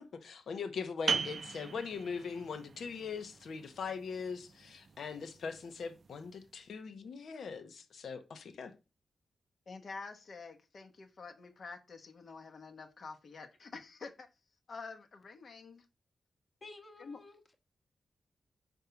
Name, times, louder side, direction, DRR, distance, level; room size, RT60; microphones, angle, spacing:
voice 1, 0.1-8.7, left 5 dB, 75° left, 1.0 m, -41 dB
sound 1, 1.1-6.4, right 5 dB, 50° right, 0.4 m, -40 dB
voice 2, 9.7-14.3 14.7-15.9 17.0-17.2, left 4 dB, 55° left, 1.1 m, -48 dB
voice 3, 16.6-17.5, left 3 dB, 30° left, 1.2 m, -53 dB
5.4 x 3.5 x 5.7 m
wide cardioid pair, 130°, 0 cm